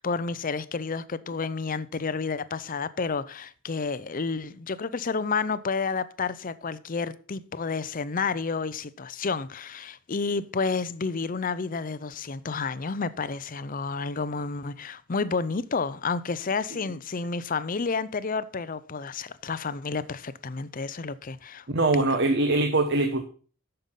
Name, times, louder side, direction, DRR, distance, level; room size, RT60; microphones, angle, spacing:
voice 1, 0.0-21.6 21.9-22.2, left 4 dB, 40° left, 0.6 m, -30 dB
voice 2, 21.7-23.2, right 2 dB, 55° right, 1.0 m, -23 dB
9.2 x 6.8 x 5.6 m
head